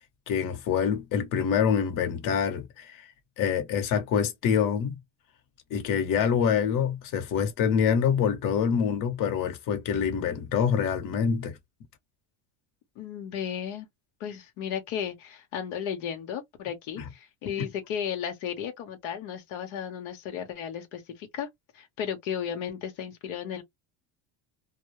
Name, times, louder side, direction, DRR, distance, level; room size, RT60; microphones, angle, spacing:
voice 1, 0.3-4.9 5.7-11.6, left 7 dB, 50° left, 0.9 m, -26 dB
voice 2, 13.0-13.9 14.2-21.5 21.7-23.6, left 8 dB, 80° left, 0.9 m, -34 dB
2.3 x 2.0 x 2.9 m
cardioid pair, 130°, 41 cm